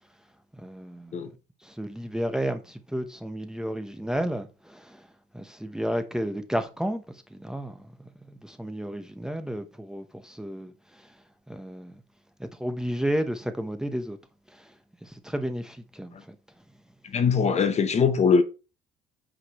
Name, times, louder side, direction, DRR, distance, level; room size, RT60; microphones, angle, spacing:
voice 1, 0.5-1.1 1.6-5.1 5.3-11.2 11.5-12.0 12.4-14.2 14.5-14.7 15.0-16.3, equal, 5° right, 1.0 m, -32 dB
voice 2, 17.1-18.4, left 5 dB, 40° left, 1.0 m, -21 dB
8.3 x 5.0 x 4.2 m
cardioid pair, 110°, 17 cm